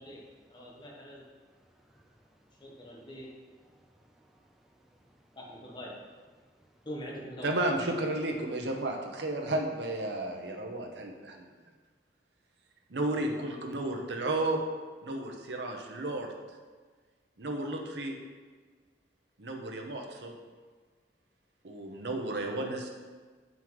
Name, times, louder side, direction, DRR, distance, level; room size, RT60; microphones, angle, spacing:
voice 1, 0.5-1.2 2.6-3.3 5.4-5.9 6.8-7.5, equal, 25° left, -2 dB, 1.0 m, -43 dB
voice 2, 1.4-5.4 6.3-6.9, right 1 dB, ahead, 0 dB, 0.5 m, -66 dB
voice 3, 7.4-11.5 12.9-14.6 15.0-16.3 17.4-18.2 19.4-20.4 21.6-22.9, right 2 dB, 70° right, 2 dB, 0.8 m, -33 dB
7.6 x 5.5 x 3.1 m, 1.5 s
head